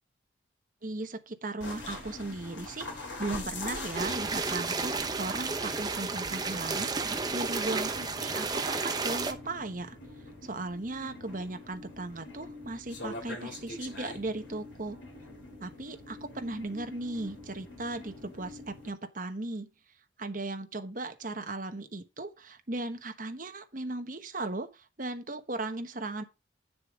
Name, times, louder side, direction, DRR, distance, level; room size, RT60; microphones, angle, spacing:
voice 1, 0.8-10.0 10.4-15.0 15.6-19.7 20.2-26.2, right 2 dB, 45° right, 1.2 m, -37 dB
sound 1, 1.6-18.9, left 2 dB, 75° left, 3.1 m, -44 dB
sound 2, 3.9-9.3, right 4 dB, 20° right, 0.8 m, -32 dB
9.6 x 6.8 x 3.7 m
head